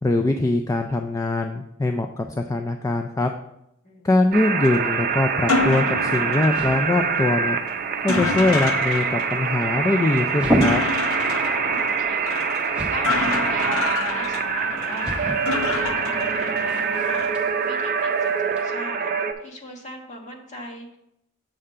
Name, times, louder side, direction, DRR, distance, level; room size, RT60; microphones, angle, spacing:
voice 1, 0.0-3.3 4.0-7.6 8.0-10.8, left 2 dB, 15° left, 5 dB, 0.3 m, -22 dB
voice 2, 3.8-4.2 11.5-17.3 17.6-21.0, left 1 dB, 35° left, 1 dB, 1.3 m, -39 dB
sound 1, 4.3-19.3, right 6 dB, 45° right, 0.5 m, -25 dB
sound 2, 4.6-17.3, left 3 dB, 70° left, 0.7 m, -29 dB
sound 3, 5.2-18.6, equal, 5° right, 0.9 m, -33 dB
7.7 x 3.7 x 5.5 m, 0.80 s
head